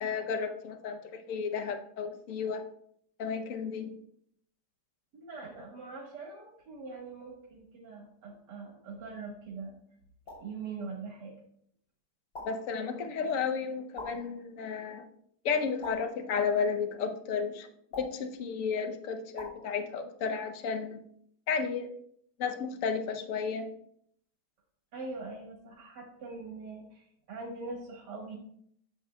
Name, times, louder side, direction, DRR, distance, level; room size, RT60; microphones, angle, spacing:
voice 1, 0.0-2.6 3.2-3.9 12.5-15.0 15.4-17.7 18.0-21.0 21.5-21.9 22.4-23.7, left 5 dB, 60° left, 6 dB, 1.0 m, -33 dB
voice 2, 5.1-9.8 10.4-11.3 24.9-28.4, right 4 dB, 80° right, -1 dB, 2.0 m, -42 dB
sound 1, 10.3-10.6 12.3-12.7 14.0-14.4 15.8-16.3 17.9-18.3 19.4-19.7, left 2 dB, 85° left, 3.8 m, -44 dB
10.0 x 6.7 x 2.2 m, 0.67 s
omnidirectional pair, 1.8 m